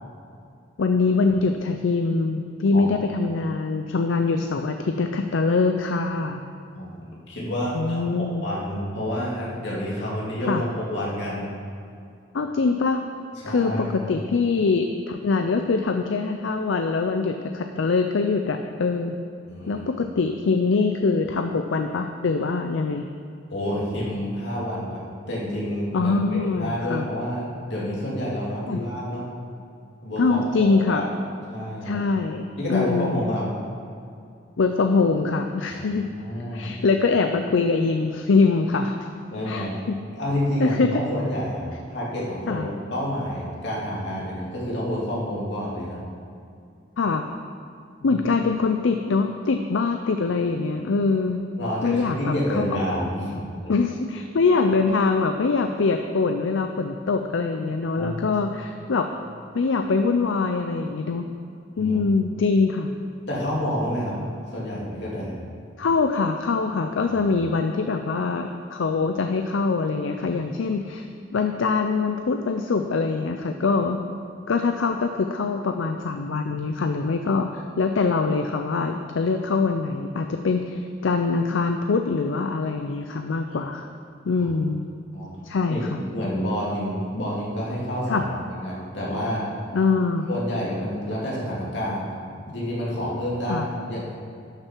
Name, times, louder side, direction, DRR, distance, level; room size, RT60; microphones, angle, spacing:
voice 1, 0.8-6.4 7.7-8.4 10.5-10.6 12.3-13.0 13.4-19.1 19.7-23.1 25.9-27.1 28.7-28.8 30.2-31.1 31.8-33.2 34.6-36.1 36.5-39.0 39.5-40.0 40.6-41.0 42.5-42.7 47.0-47.3 48.0-51.4 51.8-52.8 53.7-59.1 59.5-61.3 61.8-62.9 65.8-71.1 71.3-74.0 74.5-83.9 84.3-84.9 85.4-86.0 88.1-88.2 89.7-90.3 93.5-93.7, left 4 dB, 75° left, 6 dB, 0.5 m, -23 dB
voice 2, 6.7-11.5 13.4-14.1 19.4-19.9 23.5-25.0 25.3-29.2 30.0-31.1 31.5-32.0 32.6-33.4 35.7-36.7 39.3-39.8 40.2-41.7 41.9-46.0 48.0-48.2 51.6-53.7 57.9-58.3 61.8-62.0 63.3-64.2 64.5-65.4 67.1-67.2 84.4-84.5 85.1-85.3 85.7-89.5 90.3-94.0, equal, 60° left, -6 dB, 2.7 m, -29 dB
12.0 x 6.5 x 4.6 m, 2.5 s
head